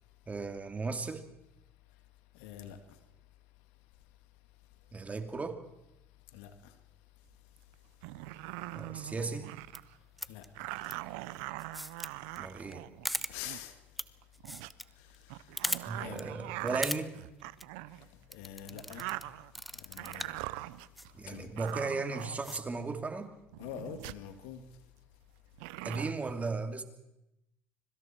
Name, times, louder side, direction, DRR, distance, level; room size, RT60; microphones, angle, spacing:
voice 1, 0.3-1.3 4.9-5.6 8.7-9.5 12.4-12.9 15.9-17.2 21.1-23.3 25.8-26.8, right 3 dB, 25° right, 2.8 m, -36 dB
voice 2, 2.4-2.8 6.3-6.5 10.3-10.4 13.3-13.7 15.3-15.4 15.9-16.3 16.6-16.8 18.3-19.1 19.8-20.4 21.3-21.5 23.6-24.6, left 10 dB, 80° left, 2.2 m, -44 dB
sound 1, 7.6-7.7 8.0-9.9 10.5-13.6 14.2-14.7 15.3-18.1 18.6-19.6 20.0-21.1 21.6-22.8 23.5-24.3 25.5-26.1, right 19 dB, 80° right, 0.7 m, -42 dB
sound 2, 9.6-9.8 10.2-10.5 10.8-10.9 11.6-12.1 12.4-12.5 12.7-12.8 13.0-13.3 14.0-14.1 14.3-14.8 15.1-15.2 15.6-15.8 16.2-16.3 16.7-17.0 17.4-17.6 18.3-19.2 19.5-20.4 21.0-21.1 21.7-21.8 22.2-22.6, equal, ahead, 1.1 m, -37 dB
25.0 x 24.0 x 4.5 m
hypercardioid pair, 70°, 6 cm